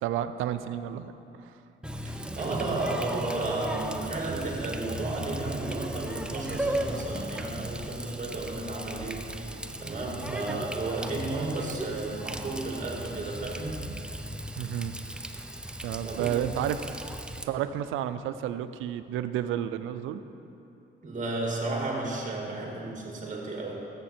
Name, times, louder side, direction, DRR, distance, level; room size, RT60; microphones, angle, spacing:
voice 1, 0.0-1.6 2.7-2.8 10.2-10.7 14.6-14.9 15.8-17.0 17.4-20.2, right 10 dB, 90° right, 11 dB, 0.5 m, -31 dB
Water tap faucet, 1.8-17.4, right 1 dB, 5° right, 0.5 m, -36 dB
voice 2, 2.0-13.8 16.0-16.5 21.0-23.8, right 2 dB, 40° right, -1 dB, 2.2 m, -33 dB
13.5 x 7.6 x 4.4 m, 3.0 s
cardioid pair, 90°, 20 cm